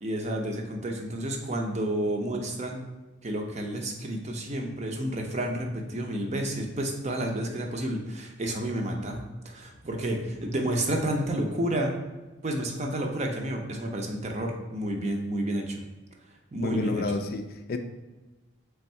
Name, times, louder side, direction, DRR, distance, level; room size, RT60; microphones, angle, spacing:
voice 1, 0.0-2.9 3.2-9.2 9.4-12.0 12.4-15.8 16.5-17.0, right 1 dB, 35° right, 2 dB, 0.6 m, -30 dB
voice 2, 16.6-17.8, left 2 dB, 50° left, 7 dB, 0.3 m, -30 dB
3.5 x 3.4 x 4.2 m, 1.2 s
head